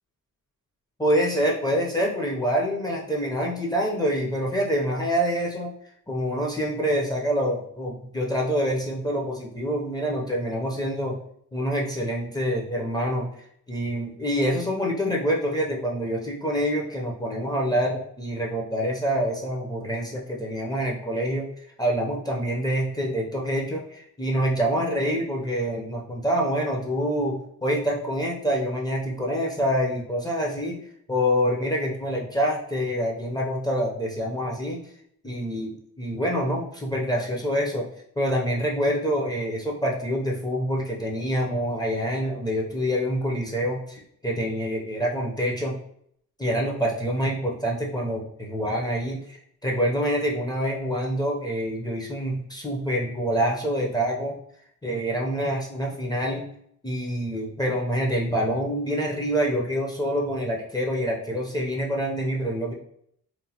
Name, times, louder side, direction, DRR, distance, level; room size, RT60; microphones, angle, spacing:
voice 1, 1.0-5.7 6.1-11.2 11.5-13.3 13.7-21.5 21.8-30.8 31.1-34.8 35.2-37.9 38.2-45.8 46.4-54.4 54.8-56.5 56.8-62.7, equal, 10° left, -3 dB, 0.4 m, -26 dB
3.0 x 2.0 x 2.7 m, 0.68 s
wide cardioid pair, 115°, 35 cm